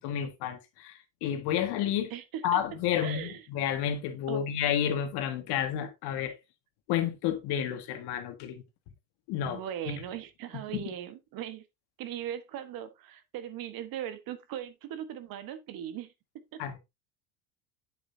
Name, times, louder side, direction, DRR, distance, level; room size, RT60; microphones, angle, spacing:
voice 1, 0.0-2.1 2.4-6.3 6.9-8.6 9.3-9.6 9.9-10.0 10.7-10.8 16.6-16.8, left 10 dB, 65° left, 1.9 m, -30 dB
voice 2, 2.1-2.6 3.0-3.5 4.3-4.5 9.4-11.7 12.0-16.1 16.5-16.6, right 10 dB, 55° right, 1.4 m, -39 dB
8.3 x 7.1 x 2.7 m
supercardioid pair, 115°, 42 cm